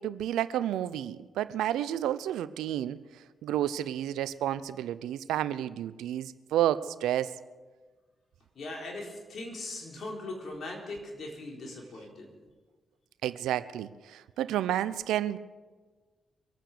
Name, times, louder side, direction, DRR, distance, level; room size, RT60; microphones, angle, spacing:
voice 1, 0.0-3.0 3.4-7.3 13.2-15.4, right 12 dB, 80° right, 16 dB, 0.5 m, -30 dB
voice 2, 8.6-12.3, left 2 dB, 65° left, 0 dB, 4.0 m, -40 dB
24.0 x 9.1 x 6.6 m, 1.4 s
hypercardioid pair, 40°, 0 cm